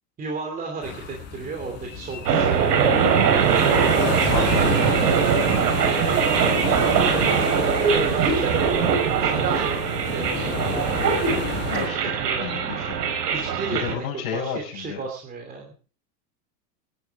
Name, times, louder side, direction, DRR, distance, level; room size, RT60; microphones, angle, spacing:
voice 1, 0.2-3.1 3.5-5.2 5.8-10.5 11.7-12.6 13.3-14.0 14.3-15.7, right 4 dB, 20° right, 2 dB, 2.9 m, -33 dB
sound 1, 0.8-11.9, left 6 dB, 20° left, 5.2 m, -32 dB
sound 2, 2.3-13.9, right 6 dB, 85° right, 4.9 m, -21 dB
voice 2, 3.8-5.1 11.7-12.0 12.4-13.0 13.7-15.0, left 8 dB, 65° left, -5 dB, 5.8 m, -31 dB
23.5 x 12.0 x 3.6 m, 0.37 s
supercardioid pair, 155°, 47 cm